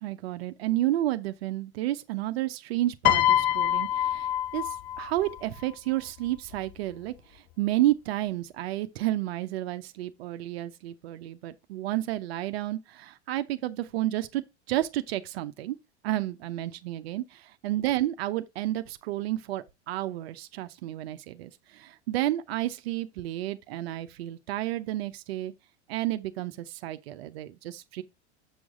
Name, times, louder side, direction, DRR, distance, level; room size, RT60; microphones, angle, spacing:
voice 1, 0.0-4.7 5.0-15.8 16.0-25.5 25.9-28.0, right 15 dB, 60° right, 0.7 m, -31 dB
Piano, 3.0-5.4 6.4-6.7, left 11 dB, 25° left, 0.4 m, -25 dB
7.1 x 6.2 x 3.6 m
hypercardioid pair, 90°, 35 cm